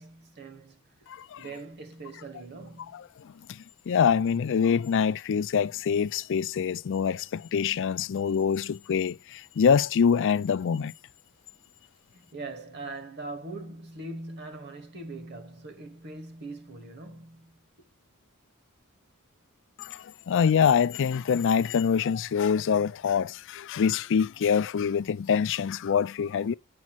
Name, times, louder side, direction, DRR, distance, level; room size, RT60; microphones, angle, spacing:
voice 1, 0.0-1.1 1.4-2.9 12.1-17.6, right 2 dB, 50° right, 1.4 m, -41 dB
voice 2, 1.1-1.4 2.9-10.9 19.8-26.5, left 7 dB, 60° left, 0.4 m, -25 dB
8.4 x 5.2 x 6.1 m
head